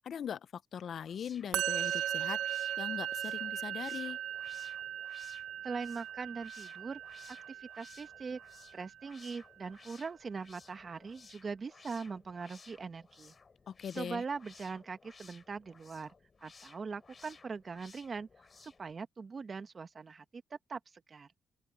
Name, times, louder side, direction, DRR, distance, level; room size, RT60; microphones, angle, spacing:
voice 1, 0.0-4.2 13.7-14.2, left 8 dB, 60° left, 0.6 m, -41 dB
sound 1, 0.9-18.9, left 4 dB, 35° left, 6.9 m, -59 dB
Musical instrument, 1.5-8.8, right 11 dB, 85° right, 1.1 m, -38 dB
voice 2, 5.6-7.0 7.3-8.4 8.7-13.3 13.9-16.1 16.4-18.3 18.6-20.4 20.7-20.8 21.1-21.3, right 5 dB, 40° right, 1.8 m, -41 dB
open air
cardioid pair, 90°, 0 cm